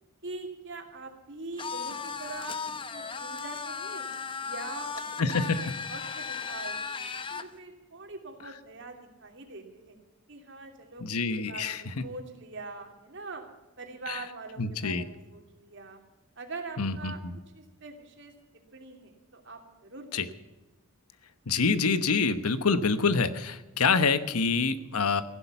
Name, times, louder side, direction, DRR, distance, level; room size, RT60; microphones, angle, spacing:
voice 1, 0.2-4.1 4.4-10.0 10.3-11.0 11.4-13.4 13.8-16.0 16.4-17.2 17.5-18.3 18.7-20.2, right 3 dB, 55° right, 3 dB, 2.9 m, -43 dB
sound 1, 1.6-7.5, left 5 dB, 25° left, 0.8 m, -36 dB
voice 2, 5.2-5.7 11.0-12.0 14.1-14.2 14.6-15.0 16.8-17.4 20.1-20.3 21.5-25.2, left 4 dB, 90° left, 12 dB, 1.1 m, -26 dB
15.5 x 11.5 x 6.9 m, 1.1 s
head